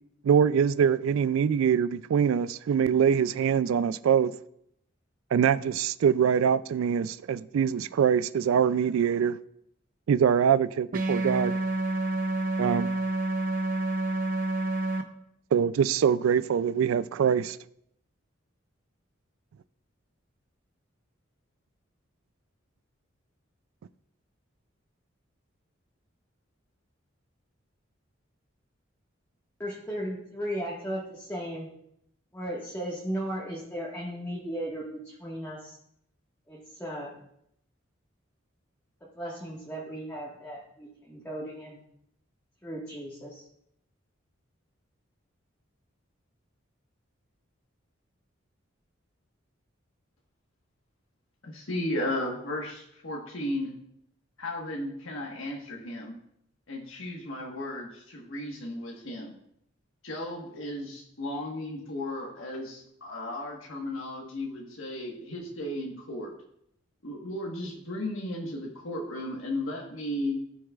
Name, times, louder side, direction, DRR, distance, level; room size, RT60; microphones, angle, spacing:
voice 1, 0.2-4.3 5.3-9.4 10.1-11.6 12.6-12.9 15.5-17.6, right 7 dB, 90° right, 0.3 m, -24 dB
sound 1, 10.9-15.0, right 2 dB, 45° right, 0.7 m, -28 dB
voice 2, 29.6-31.7 32.3-35.8 36.5-37.1 39.1-41.8 42.6-43.4, equal, 10° left, 1.5 m, -36 dB
voice 3, 51.4-53.7 54.4-56.2 56.7-59.3 60.0-66.3 67.0-70.4, left 1 dB, 80° left, 1.4 m, -35 dB
15.5 x 6.3 x 2.4 m
head